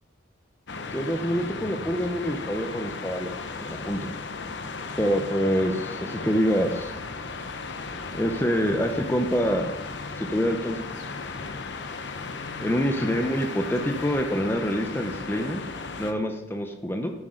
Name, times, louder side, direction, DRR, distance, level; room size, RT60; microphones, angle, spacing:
sound 1, 0.7-16.1, left 4 dB, 60° left, 0.8 m, -36 dB
voice 1, 0.9-3.3 3.6-4.1 5.0-6.9 8.1-9.7 10.2-10.8 12.6-15.6 16.0-17.1, equal, 10° left, 5 dB, 0.7 m, -26 dB
10.5 x 8.4 x 3.8 m, 1.0 s
head